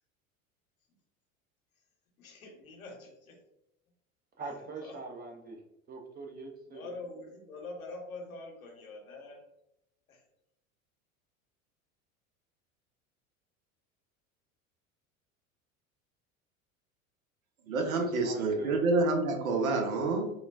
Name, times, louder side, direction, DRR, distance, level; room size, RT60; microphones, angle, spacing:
voice 1, 2.2-3.4 4.8-4.9 6.7-9.4 10.1-10.2, left 2 dB, 85° left, 0 dB, 0.9 m, -45 dB
voice 2, 4.4-5.6 5.9-6.9 18.0-18.8, right 3 dB, 25° right, 3 dB, 0.6 m, -42 dB
voice 3, 17.7-20.3, right 3 dB, 75° right, 4 dB, 0.7 m, -28 dB
3.8 x 2.2 x 2.2 m, 0.83 s
hypercardioid pair, 75°, 41 cm